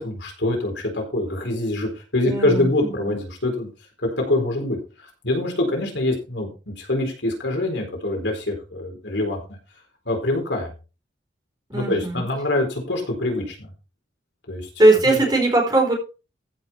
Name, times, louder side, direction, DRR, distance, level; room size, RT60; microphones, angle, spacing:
voice 1, 0.0-3.7 4.3-4.8 5.2-9.4 10.1-10.7 11.7-13.7 14.5-14.7 15.0-15.3, left 2 dB, 70° left, 2 dB, 4.3 m, -24 dB
voice 2, 2.2-3.1 11.7-12.2 14.8-15.9, right 2 dB, 20° right, 0 dB, 4.1 m, -19 dB
14.5 x 6.2 x 4.4 m, 0.32 s
head